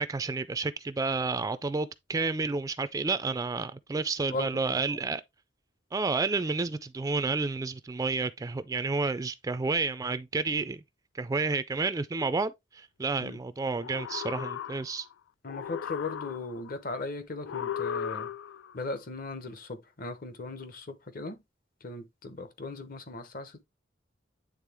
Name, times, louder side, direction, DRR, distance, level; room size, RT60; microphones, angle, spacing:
voice 1, 0.0-5.2 5.9-10.8 11.1-15.1, right 3 dB, 20° right, 0.3 m, -30 dB
voice 2, 4.3-5.0 13.2-13.4 15.4-18.3 18.7-21.4 21.8-23.6, left 3 dB, 50° left, 1.0 m, -38 dB
sound 1, 13.7-15.1 15.5-16.7 17.4-18.7, left 8 dB, 90° left, 0.3 m, -36 dB
9.0 x 3.6 x 3.4 m
head